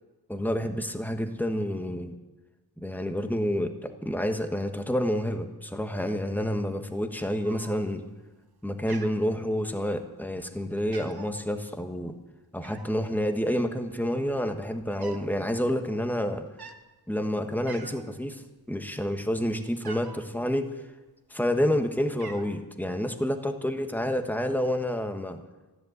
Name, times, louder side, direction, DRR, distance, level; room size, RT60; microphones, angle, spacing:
voice 1, 0.3-2.2 2.8-8.0 8.6-12.2 12.5-16.5 17.1-18.4 18.7-20.7 21.3-25.4, equal, 5° left, 6 dB, 1.3 m, -29 dB
Cat, 7.4-8.1 8.4-8.6 8.9-9.9 10.4-10.5 10.8-11.4 12.6-13.0 13.8-13.9 14.1-15.3 15.6-15.8 16.5-16.8 17.3-17.4 17.7-18.2 18.6-20.3 21.1-21.7 21.9-22.6, right 5 dB, 65° right, 1.2 m, -46 dB
13.5 x 11.0 x 8.0 m, 1.2 s
wide cardioid pair, 85°, 40 cm